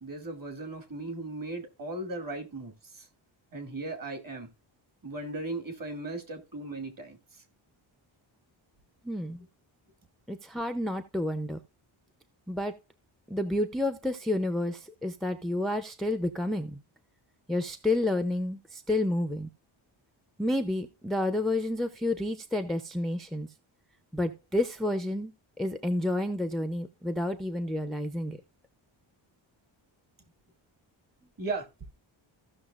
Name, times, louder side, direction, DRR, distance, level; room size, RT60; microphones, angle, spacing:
voice 1, 0.0-3.1 3.5-4.5 5.0-7.2 31.4-31.7, right 2 dB, 45° right, 2.2 m, -37 dB
voice 2, 9.0-9.5 10.3-11.6 12.5-12.7 13.3-16.8 17.5-19.5 20.4-23.5 24.1-25.3 25.6-28.4, left 1 dB, ahead, 0.5 m, -30 dB
15.5 x 6.3 x 2.4 m
wide cardioid pair, 155°, 48 cm